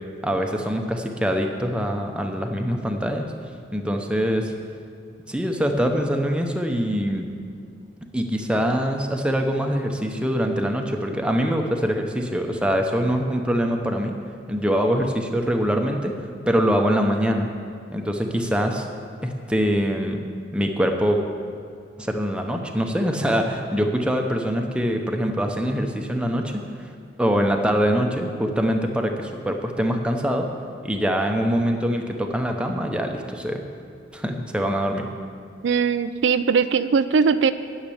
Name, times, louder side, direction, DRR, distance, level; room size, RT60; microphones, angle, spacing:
voice 1, 0.2-3.3 3.7-4.5 5.3-7.3 8.1-14.2 14.5-17.5 17.9-18.9 19.2-20.2 20.5-21.2 22.0-26.9 27.2-30.5 30.8-33.6 34.1-35.1, equal, 5° right, 3 dB, 0.8 m, -24 dB
voice 2, 35.6-37.5, right 5 dB, 80° right, 12 dB, 0.4 m, -20 dB
10.0 x 6.7 x 8.5 m, 2.4 s
head